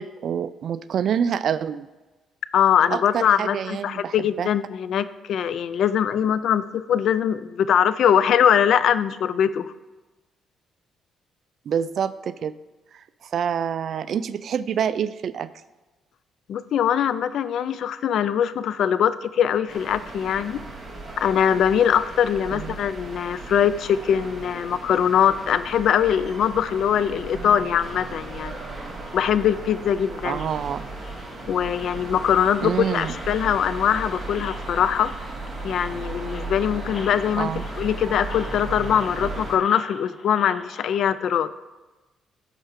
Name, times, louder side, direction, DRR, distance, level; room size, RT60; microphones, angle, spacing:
voice 1, 0.0-1.9 2.9-4.5 11.7-12.5 12.9-15.5 22.5-22.8 30.2-30.8 32.6-33.1 37.4-37.7, right 8 dB, 60° right, 15 dB, 0.3 m, -27 dB
voice 2, 2.5-9.7 16.5-20.6 21.2-28.5 29.1-30.4 31.5-35.1 35.6-37.5 37.8-41.5, left 9 dB, 70° left, 15 dB, 0.3 m, -22 dB
sound 1, 19.7-39.6, right 2 dB, 30° right, 2.1 m, -36 dB
sound 2, 27.7-41.0, left 4 dB, 50° left, 0.8 m, -46 dB
12.5 x 4.4 x 3.7 m, 1.2 s
cardioid pair, 90°, 0 cm